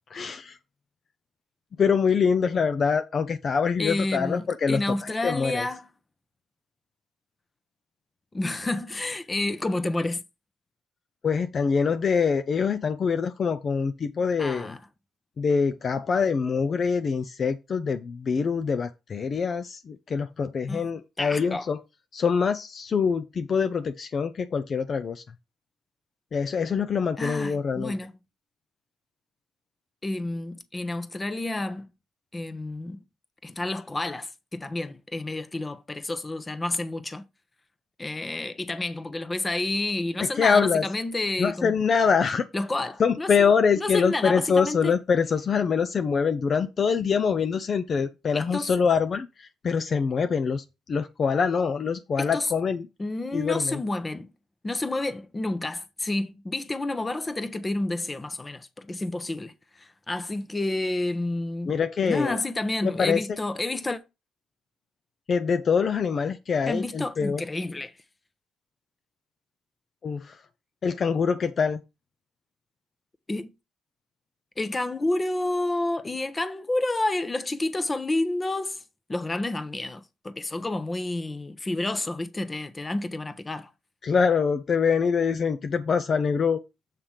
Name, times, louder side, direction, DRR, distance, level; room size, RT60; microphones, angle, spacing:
voice 1, 0.1-0.6 1.8-5.7 11.2-14.8 15.4-21.8 22.1-25.2 26.3-27.9 40.2-40.8 41.4-42.5 43.0-52.9 53.3-53.8 61.7-62.4 62.8-63.3 65.3-67.4 70.0-70.4 70.8-71.8 84.0-86.6, left 6 dB, 50° left, 0.5 m, -24 dB
voice 2, 3.8-5.9 8.3-10.2 14.4-14.8 20.7-20.9 21.2-21.7 27.2-28.1 30.0-31.9 32.3-33.0 33.4-37.2 38.0-41.7 42.5-43.3 43.8-44.9 48.3-48.7 52.2-52.5 53.0-54.3 54.6-61.7 62.0-64.0 66.7-67.9 73.3-73.5 74.6-78.8 79.1-83.7, left 2 dB, 20° left, 0.9 m, -29 dB
7.4 x 3.3 x 5.7 m
cardioid pair, 90°, 0 cm